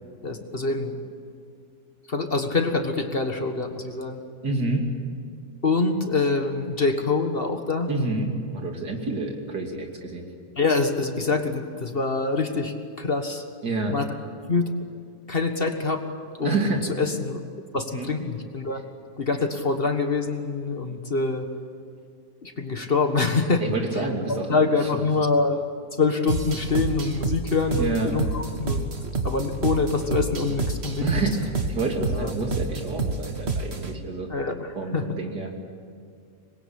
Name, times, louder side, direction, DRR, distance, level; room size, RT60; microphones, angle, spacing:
voice 1, 0.2-1.0 2.1-4.2 5.6-7.9 10.6-13.4 13.9-14.1 14.5-14.7 15.3-16.0 16.4-17.4 17.7-18.8 19.2-21.5 22.4-23.6 23.9-25.6 25.9-31.2 32.0-32.3 34.3-35.1, left 3 dB, 35° left, 6 dB, 1.7 m, -25 dB
voice 2, 4.4-4.9 7.9-10.3 13.6-14.0 16.4-16.8 18.0-18.1 23.6-24.6 27.8-28.2 31.0-34.3 34.8-35.5, right 3 dB, 80° right, 2 dB, 3.5 m, -28 dB
sound 1, 26.3-33.9, right 3 dB, 40° right, 1.9 m, -29 dB
25.5 x 21.5 x 8.8 m, 2.4 s
omnidirectional pair, 1.7 m